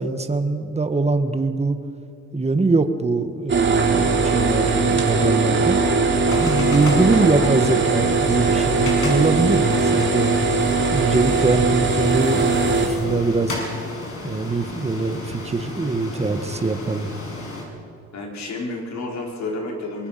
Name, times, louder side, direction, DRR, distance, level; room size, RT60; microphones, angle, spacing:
voice 1, 0.0-1.8 2.3-5.8 6.4-10.3 10.9-12.4 12.7-13.6 14.2-17.1, right 3 dB, 20° right, 8 dB, 1.7 m, -22 dB
sound 1, 3.5-12.9, right 4 dB, 40° right, 3.5 m, -20 dB
sound 2, 6.3-17.6, left 2 dB, 50° left, 6.3 m, -33 dB
voice 2, 18.1-20.1, left 2 dB, 65° left, 0 dB, 5.0 m, -30 dB
24.5 x 21.0 x 5.9 m, 2.5 s
cardioid pair, 90°, 30 cm